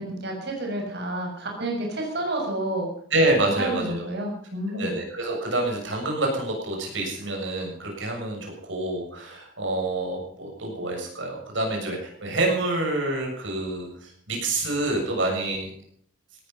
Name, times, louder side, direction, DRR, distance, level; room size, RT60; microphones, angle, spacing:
voice 1, 0.0-2.9 3.6-4.9, right 1 dB, 60° right, 0 dB, 6.5 m, -30 dB
voice 2, 3.1-4.1 4.7-15.7, right 2 dB, 75° right, 0 dB, 7.2 m, -27 dB
18.0 x 14.0 x 5.5 m, 0.63 s
head